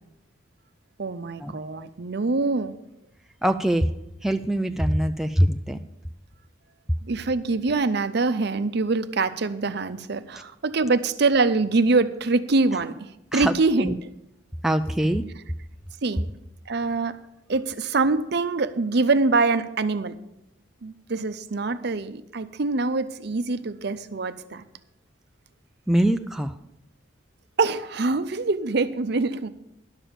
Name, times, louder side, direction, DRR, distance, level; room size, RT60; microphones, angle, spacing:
voice 1, 1.0-2.7 7.1-13.9 16.0-16.2 16.7-17.2 17.5-20.2 20.8-24.6 27.6-29.5, right 3 dB, 55° right, 12 dB, 0.6 m, -24 dB
voice 2, 3.4-3.9 4.2-5.8 13.3-13.9 14.6-15.3 25.9-26.5, right 1 dB, ahead, 7 dB, 0.3 m, -23 dB
11.5 x 7.0 x 7.3 m, 0.84 s
head